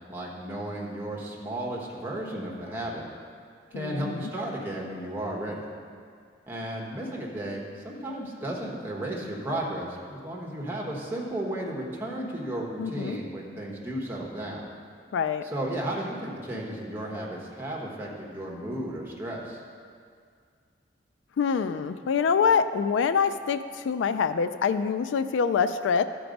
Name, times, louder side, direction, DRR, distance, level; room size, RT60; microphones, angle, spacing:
voice 1, 0.1-3.1 3.7-5.6 6.5-14.6 15.4-19.6, right 1 dB, 10° right, -3 dB, 1.2 m, -34 dB
voice 2, 3.7-4.3 12.8-13.2 15.1-15.4 21.4-26.0, left 6 dB, 75° left, 11 dB, 0.3 m, -25 dB
12.5 x 4.6 x 5.2 m, 2.1 s
head